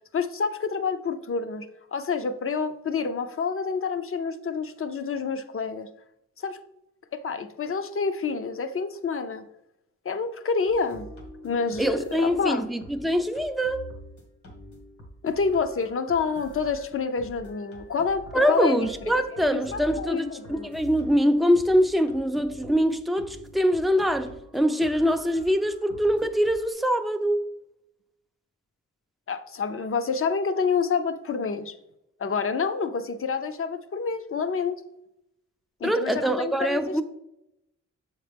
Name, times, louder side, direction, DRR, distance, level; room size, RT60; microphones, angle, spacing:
voice 1, 0.1-5.9 6.4-6.6 7.1-9.4 10.0-11.1 11.4-12.7 15.2-20.7 29.3-31.8 32.2-34.7 35.8-37.0, left 5 dB, 45° left, 0.6 m, -28 dB
sound 1, 10.7-26.7, left 1 dB, 75° left, 1.8 m, -46 dB
voice 2, 11.8-13.8 18.3-27.5 35.8-37.0, equal, ahead, 0.4 m, -24 dB
7.2 x 4.4 x 3.4 m
wide cardioid pair, 105°, 30 cm